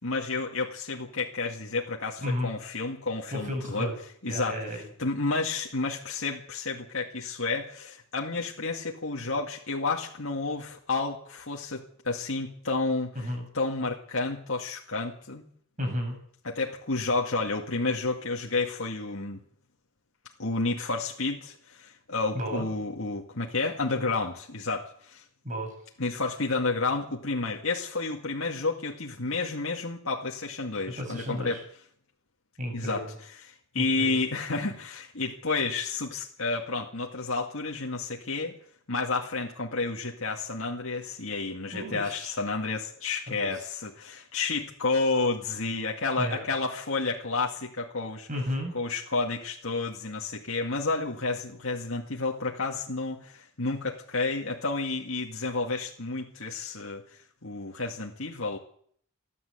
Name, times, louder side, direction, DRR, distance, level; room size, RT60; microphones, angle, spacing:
voice 1, 0.0-3.9 4.2-15.4 16.4-19.4 20.4-25.2 26.0-31.6 32.7-38.6 38.9-48.3 48.7-58.6, left 3 dB, 75° left, -1 dB, 2.1 m, -31 dB
voice 2, 2.2-2.5 3.3-4.0 4.2-4.9 13.1-13.5 15.8-16.2 22.3-22.7 25.4-25.7 31.0-31.6 32.6-33.1 33.8-34.2 41.7-42.3 43.3-43.5 46.2-46.4 48.3-48.7, left 1 dB, 35° right, 4 dB, 7.6 m, -33 dB
28.5 x 11.0 x 8.1 m, 0.62 s
head